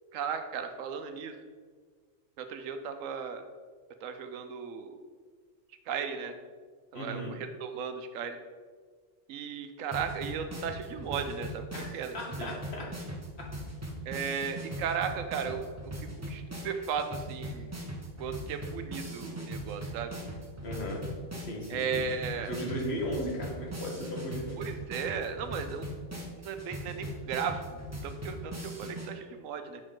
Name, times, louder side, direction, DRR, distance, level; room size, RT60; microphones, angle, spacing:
voice 1, 0.1-1.4 2.4-3.4 4.0-5.0 5.9-6.4 6.9-8.4 9.3-12.5 14.1-15.9 16.2-17.7 18.2-20.1 21.7-22.5 24.6-25.9 26.3-27.6 28.0-29.8, right 6 dB, 90° right, 7 dB, 1.0 m, -36 dB
voice 2, 6.9-7.3 11.7-12.9 13.4-13.5 20.6-21.0 21.3-22.0 22.4-24.6, equal, 55° left, -2 dB, 1.5 m, -36 dB
sound 1, 9.9-29.1, right 1 dB, 15° right, 0.6 m, -40 dB
6.3 x 5.0 x 3.7 m, 1.6 s
omnidirectional pair, 1.3 m